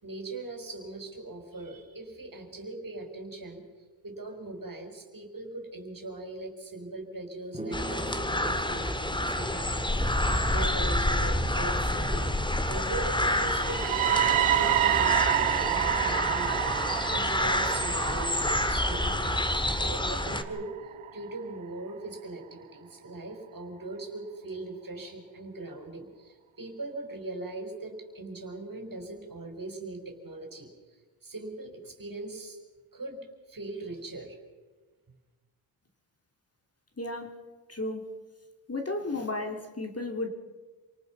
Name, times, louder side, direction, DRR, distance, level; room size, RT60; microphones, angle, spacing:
voice 1, 0.0-3.7 4.0-12.3 12.7-19.5 19.7-20.8 21.1-30.7 31.2-32.6 32.9-34.4, right 2 dB, 45° right, 4 dB, 5.0 m, -40 dB
sound 1, 7.5-11.1, right 1 dB, 15° right, 2.2 m, -42 dB
sound 2, 7.7-20.4, left 1 dB, 10° left, 1.9 m, -28 dB
sound 3, 13.5-21.4, right 12 dB, 80° right, 1.0 m, -29 dB
voice 2, 37.0-37.4 37.7-38.0 38.7-40.3, left 2 dB, 30° left, 4 dB, 3.2 m, -33 dB
28.0 x 19.0 x 5.7 m, 1.3 s
cardioid pair, 65°, 48 cm